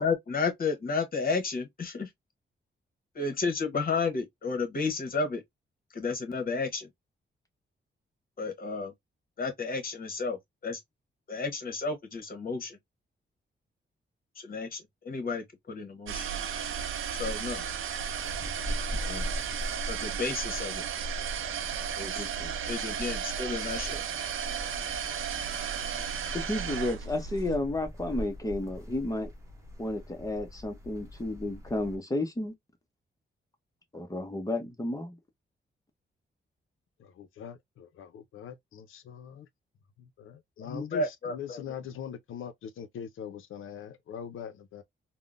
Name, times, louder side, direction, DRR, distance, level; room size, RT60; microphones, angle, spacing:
voice 1, 0.0-2.1 3.1-5.4 5.9-6.9 8.4-8.9 9.4-10.8 11.3-12.8 14.4-16.2 17.2-17.6 19.0-19.3 19.9-20.8 21.9-22.3 22.7-24.0 40.6-41.6, left 4 dB, 45° left, 1.0 m, -32 dB
sound 1, 16.1-27.6, right 7 dB, 85° right, 0.5 m, -34 dB
sound 2, 18.2-32.0, left 1 dB, 15° right, 0.9 m, -42 dB
voice 2, 22.2-22.5 26.3-29.3 29.8-32.5 33.9-35.1, left 2 dB, 15° left, 0.7 m, -32 dB
voice 3, 37.0-39.5 40.0-44.8, left 8 dB, 85° left, 0.5 m, -42 dB
3.6 x 2.1 x 2.4 m
wide cardioid pair, 130°, 20 cm